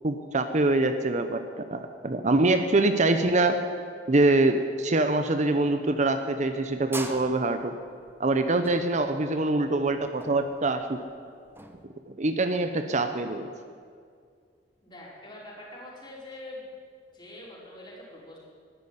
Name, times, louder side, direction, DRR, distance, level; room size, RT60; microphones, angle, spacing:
voice 1, 0.0-3.6 4.1-7.8 8.2-11.0 12.1-13.5, right 2 dB, 40° right, 8 dB, 0.8 m, -24 dB
sound 1, 6.4-11.8, right 2 dB, 15° right, 1.1 m, -43 dB
voice 2, 14.8-16.7 17.1-18.4, left 1 dB, 25° left, -5 dB, 5.0 m, -44 dB
13.0 x 11.0 x 9.7 m, 2.2 s
head